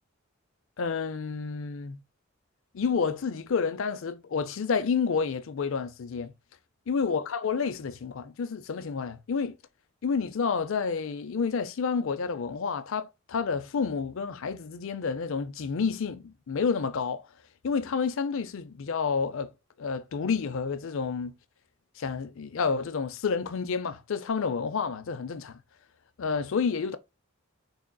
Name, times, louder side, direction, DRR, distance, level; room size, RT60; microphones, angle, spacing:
voice 1, 0.8-2.0 2.7-6.3 6.9-9.6 10.0-17.3 17.6-19.5 19.8-21.3 22.0-25.6 26.2-27.0, left 5 dB, 70° left, 0.5 m, -29 dB
3.9 x 3.5 x 2.3 m
head